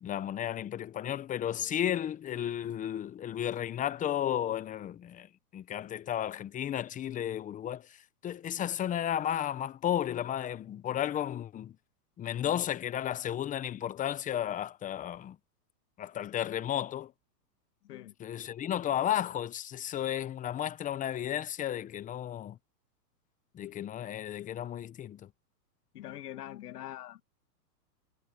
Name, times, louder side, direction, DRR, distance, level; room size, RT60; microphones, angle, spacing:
voice 1, 0.0-7.9 8.2-11.8 12.2-15.4 16.0-17.1 18.2-22.6 23.5-25.3, left 10 dB, 15° left, 0.9 m, -33 dB
voice 2, 25.9-27.2, left 13 dB, 65° left, 2.2 m, -43 dB
hypercardioid pair, 135°, 49 cm